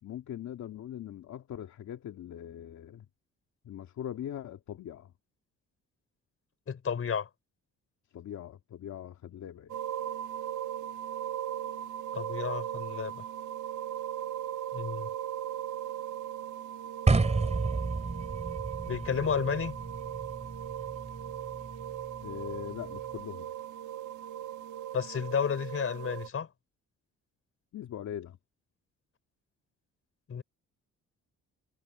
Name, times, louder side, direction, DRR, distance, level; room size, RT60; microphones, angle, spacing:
voice 1, 0.0-3.1 3.6-5.1 8.1-9.8 22.2-23.5 27.7-28.4, left 10 dB, 70° left, 2.4 m, -41 dB
voice 2, 6.7-7.3 12.1-13.2 14.7-15.1 18.9-19.8 24.9-26.5 30.3-30.4, left 7 dB, 45° left, 4.5 m, -32 dB
sound 1, 9.7-26.3, right 11 dB, 80° right, 1.4 m, -38 dB
sound 2, 17.1-23.2, right 3 dB, 20° right, 2.9 m, -32 dB
cardioid pair, 90°, 30 cm